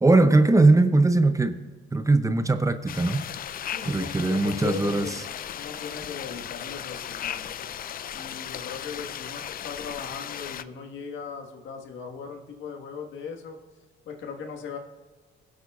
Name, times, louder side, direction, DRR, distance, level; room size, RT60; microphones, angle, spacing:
voice 1, 0.0-1.6 1.9-3.3 3.9-5.1, right 2 dB, 15° right, 10 dB, 0.5 m, -20 dB
sound 1, 2.9-10.6, left 10 dB, 45° left, 0.4 m, -36 dB
voice 2, 3.6-5.2 5.5-7.7 8.1-13.6 14.0-14.8, left 6 dB, 75° left, 3 dB, 1.4 m, -38 dB
20.0 x 8.1 x 2.4 m, 1.4 s
cardioid pair, 90°, 20 cm